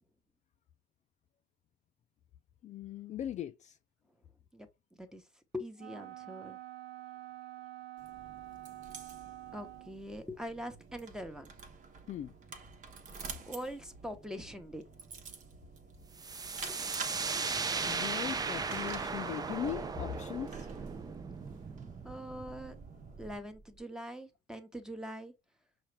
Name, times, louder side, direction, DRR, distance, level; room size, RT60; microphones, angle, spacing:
voice 1, 2.6-3.8 12.1-12.3 17.8-20.7, left 10 dB, 45° left, 0.4 m, -39 dB
voice 2, 4.5-5.2 5.5-6.6 9.5-11.5 13.5-14.8 16.6-16.8 22.0-22.8 23.2-25.3, equal, 5° right, 0.9 m, -43 dB
Wind instrument woodwind instrument, 5.8-10.1, right 16 dB, 70° right, 0.6 m, -47 dB
sound 1, 8.0-23.4, right 5 dB, 50° right, 1.1 m, -49 dB
sound 2, 16.2-23.8, right 4 dB, 20° right, 0.5 m, -37 dB
5.6 x 2.5 x 3.1 m
cardioid pair, 110°, 17 cm